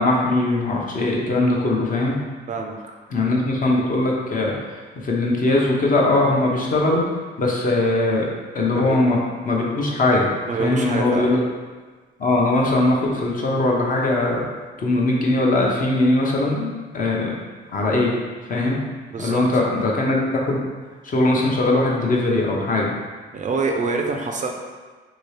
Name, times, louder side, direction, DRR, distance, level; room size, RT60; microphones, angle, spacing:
voice 1, 0.0-2.2 3.1-7.0 7.4-8.3 8.5-9.2 9.4-10.3 10.6-11.4 12.2-14.4 14.8-17.4 17.7-18.1 18.5-18.8 19.2-20.6 21.0-22.9, left 2 dB, 45° left, -2 dB, 0.7 m, -20 dB
voice 2, 2.5-2.8 8.7-9.0 10.5-11.3 19.1-19.4 23.3-24.5, right 4 dB, 40° right, 2 dB, 0.4 m, -25 dB
2.9 x 2.8 x 3.2 m, 1.4 s
cardioid pair, 90°, 20 cm